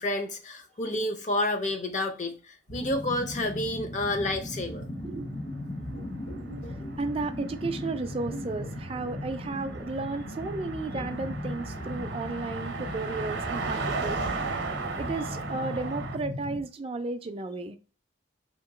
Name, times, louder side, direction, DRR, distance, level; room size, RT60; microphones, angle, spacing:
voice 1, 0.0-4.9, left 1 dB, 40° left, 0.5 m, -30 dB
sound 1, 2.7-16.6, left 1 dB, 85° left, 1.3 m, -38 dB
sound 2, 5.9-10.3 10.6-14.1 14.5-14.6, equal, 70° left, 0.9 m, -49 dB
Car passing by, 6.0-16.2, right 4 dB, 65° right, 0.6 m, -37 dB
voice 2, 7.0-14.2 15.0-17.8, right 3 dB, 30° right, 0.3 m, -33 dB
2.9 x 2.6 x 3.7 m
head